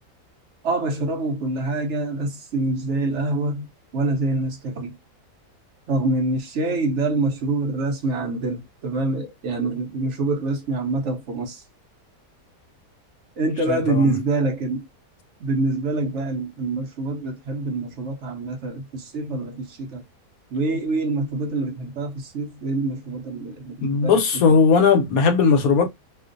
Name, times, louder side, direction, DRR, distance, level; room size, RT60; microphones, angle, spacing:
voice 1, 0.6-3.7 3.9-5.0 5.9-11.6 13.4-14.9 15.4-20.0 20.5-24.2 24.5-24.6, right 2 dB, 60° right, 0.8 m, -25 dB
voice 2, 13.7-14.1 23.8-25.9, left 5 dB, 70° left, 1.0 m, -18 dB
2.5 x 2.3 x 2.5 m
omnidirectional pair, 1.7 m